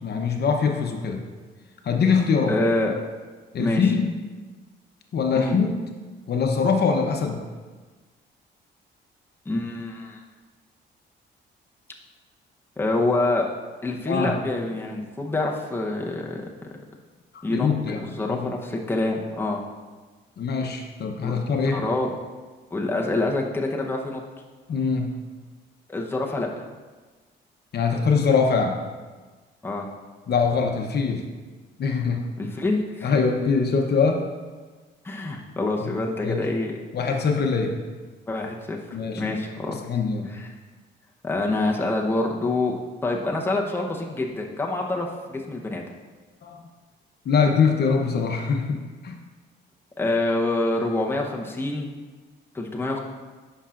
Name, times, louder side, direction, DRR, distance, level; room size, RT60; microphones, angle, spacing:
voice 1, 0.0-1.2 1.8-2.5 3.5-4.2 5.1-5.7 6.3-7.4 14.1-14.4 17.5-18.5 20.4-21.8 24.7-25.1 27.7-28.8 30.3-31.2 31.8-32.3 33.0-34.2 35.8-35.9 36.2-36.4 36.9-37.7 38.9-39.3 39.7-40.3 46.4-46.6 47.2-49.2, left 5 dB, 55° left, 3 dB, 0.8 m, -23 dB
voice 2, 2.5-2.9 3.6-3.9 5.3-5.6 9.5-10.2 12.8-13.5 13.8-16.4 17.4-17.7 18.0-19.6 21.2-21.4 21.6-22.2 22.7-24.2 25.9-26.6 29.6-29.9 32.4-33.1 35.0-36.8 38.3-38.8 39.2-39.8 40.3-40.5 41.2-42.7 43.0-45.8 50.0-51.9 52.5-53.0, left 2 dB, 10° left, 0 dB, 0.8 m, -26 dB
9.8 x 5.6 x 2.5 m, 1.4 s
cardioid pair, 90°, 20 cm